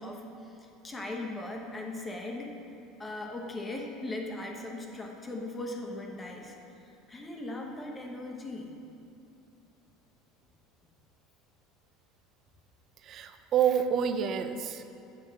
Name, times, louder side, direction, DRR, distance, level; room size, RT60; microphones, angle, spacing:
voice 1, 0.0-2.5 3.0-6.6 7.1-8.7, left 2 dB, 20° left, 1 dB, 1.0 m, -39 dB
voice 2, 13.1-14.8, right 8 dB, 45° right, 8 dB, 0.5 m, -28 dB
7.4 x 4.5 x 5.8 m, 2.7 s
supercardioid pair, 110°, 0 cm